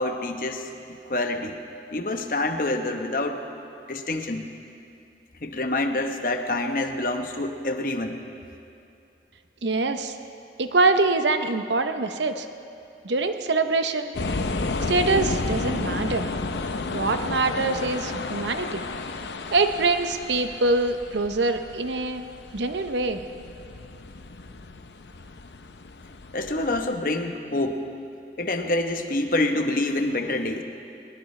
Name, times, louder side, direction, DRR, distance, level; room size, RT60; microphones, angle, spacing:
voice 1, 0.0-1.6 1.9-3.4 3.9-4.5 5.4-8.2 26.3-27.8 28.4-30.6, left 2 dB, 50° left, 5 dB, 1.0 m, -27 dB
voice 2, 9.6-10.2 10.6-12.5 13.0-14.1 14.9-16.3 16.9-18.8 19.5-22.2 22.5-23.2, right 3 dB, 85° right, 8 dB, 0.8 m, -24 dB
sound 1, 14.1-26.9, left 3 dB, 75° left, 0.7 m, -32 dB
21.0 x 19.0 x 3.3 m, 2.6 s
head